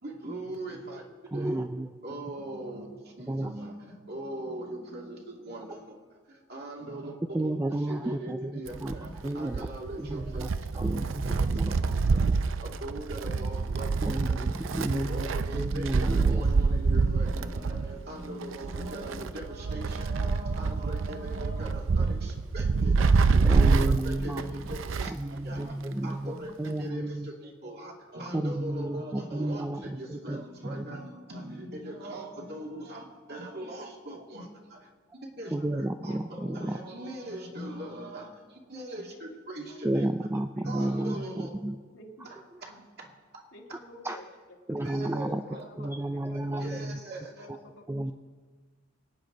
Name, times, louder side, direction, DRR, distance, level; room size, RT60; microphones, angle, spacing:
voice 1, 0.0-1.0 1.3-1.6 2.0-14.4 14.9-25.8 26.0-34.9 35.4-40.1 40.6-41.5 42.2-43.1 44.8-45.6 46.6-47.5, right 1 dB, 55° right, -1 dB, 2.3 m, -41 dB
voice 2, 1.3-1.9 3.3-3.6 7.3-8.9 9.2-9.7 10.0-10.5 10.7-11.7 14.0-15.3 15.5-16.5 23.4-24.7 25.0-26.3 26.6-27.3 28.3-31.0 35.5-36.8 39.8-41.8 44.0-44.2 44.7-45.4 45.8-47.0 47.9-48.1, right 1 dB, 15° right, 7 dB, 0.4 m, -32 dB
Wind, 8.7-25.3 25.6-25.7 26.7-26.8, right 4 dB, 90° right, 0.5 m, -27 dB
voice 3, 16.4-16.7 35.4-36.7 39.1-39.2 39.5-39.8 40.6-41.3 41.9-42.7 43.5-44.3 44.7-46.7 47.3-48.1, left 1 dB, 75° left, 0 dB, 2.1 m, -51 dB
24.5 x 9.6 x 3.9 m, 1.4 s
head